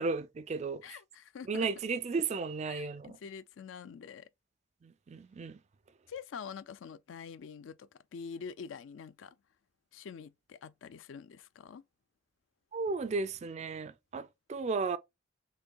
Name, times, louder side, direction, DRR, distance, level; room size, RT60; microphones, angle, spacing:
voice 1, 0.0-0.8 1.5-3.2 4.8-5.6 12.7-15.0, right 4 dB, 35° right, 0.3 m, -34 dB
voice 2, 0.8-1.7 2.7-4.3 6.1-9.4 9.9-11.8, left 6 dB, 70° left, 0.4 m, -46 dB
6.5 x 2.6 x 2.2 m
head